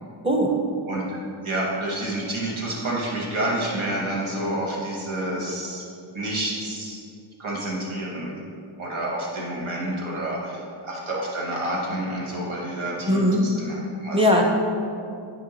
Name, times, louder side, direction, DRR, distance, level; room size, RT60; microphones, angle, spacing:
voice 1, 0.2-0.6 13.1-13.5 14.1-14.4, equal, 10° right, 0 dB, 1.0 m, -19 dB
voice 2, 0.9-1.2 1.4-5.8 6.1-7.0 7.4-8.3 8.8-14.4, right 1 dB, 75° right, -4 dB, 1.7 m, -29 dB
9.1 x 3.6 x 4.2 m, 2.4 s
wide cardioid pair, 85°, 49 cm